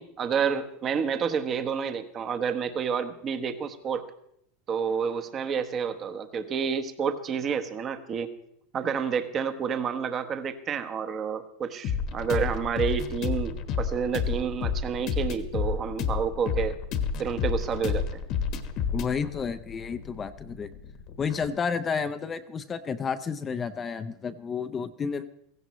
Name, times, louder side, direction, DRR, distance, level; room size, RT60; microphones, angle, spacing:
voice 1, 0.0-4.0 4.7-8.3 8.7-16.8 17.2-18.1, right 6 dB, 30° right, 9 dB, 1.0 m, -29 dB
sound 1, 11.8-21.5, left 6 dB, 45° left, 1.3 m, -30 dB
voice 2, 18.9-20.7 21.2-25.3, left 6 dB, 25° left, 11 dB, 0.6 m, -31 dB
16.0 x 15.5 x 3.1 m, 0.74 s
supercardioid pair, 130°, 0 cm